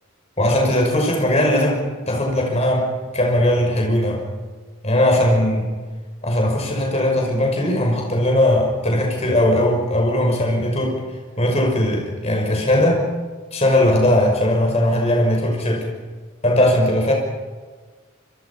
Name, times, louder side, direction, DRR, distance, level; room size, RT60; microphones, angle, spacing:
voice 1, 0.4-1.8 2.1-2.9 3.1-4.2 4.8-5.6 6.2-11.0 11.4-13.0 13.5-15.9 16.4-17.1, left 1 dB, 30° left, 1 dB, 6.0 m, -19 dB
28.0 x 23.0 x 5.8 m, 1.4 s
head